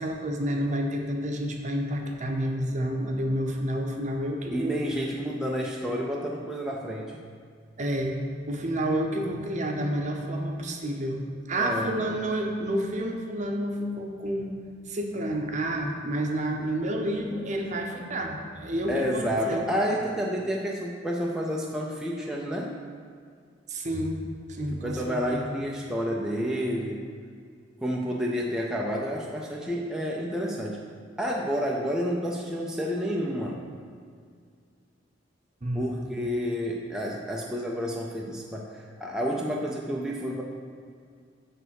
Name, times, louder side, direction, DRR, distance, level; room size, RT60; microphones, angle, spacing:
voice 1, 0.0-4.8 7.8-8.2 8.5-14.5 14.9-19.6 23.7-25.6 35.6-36.0, right 1 dB, 40° right, 2 dB, 0.8 m, -29 dB
voice 2, 4.5-7.2 11.6-12.0 18.9-22.8 24.7-27.1 27.8-30.8 31.2-33.7 35.7-40.4, equal, 5° right, -3 dB, 0.5 m, -30 dB
8.4 x 3.4 x 6.4 m, 2.2 s
head